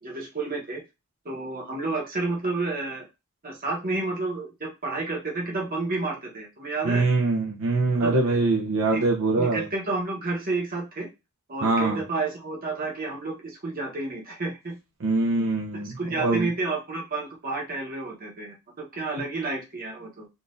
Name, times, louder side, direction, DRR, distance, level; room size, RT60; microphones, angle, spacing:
voice 1, 0.0-0.8 1.2-3.1 3.4-7.0 8.0-8.4 8.9-9.0 9.4-11.1 11.5-14.7 15.3-15.5 15.8-20.3, right 3 dB, 40° right, -1 dB, 1.0 m, -30 dB
voice 2, 6.8-9.7 11.6-12.0 15.0-16.5, right 3 dB, 60° right, -1 dB, 0.6 m, -23 dB
3.8 x 2.4 x 2.5 m, 0.25 s
head